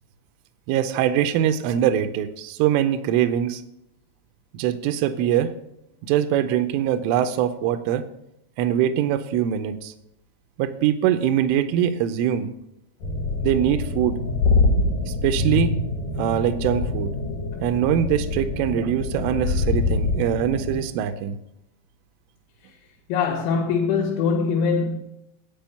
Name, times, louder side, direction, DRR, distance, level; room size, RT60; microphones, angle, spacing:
voice 1, 0.7-3.6 4.5-5.5 6.0-8.1 8.6-9.9 10.6-12.5 13.4-14.2 15.1-15.8 16.2-17.1 17.6-21.4, right 10 dB, 80° right, 2.9 m, -23 dB
sound 1, 13.0-20.8, left 3 dB, 60° left, 2.3 m, -25 dB
voice 2, 23.1-25.0, left 5 dB, 80° left, 4.0 m, -23 dB
8.9 x 8.5 x 5.7 m
omnidirectional pair, 6.0 m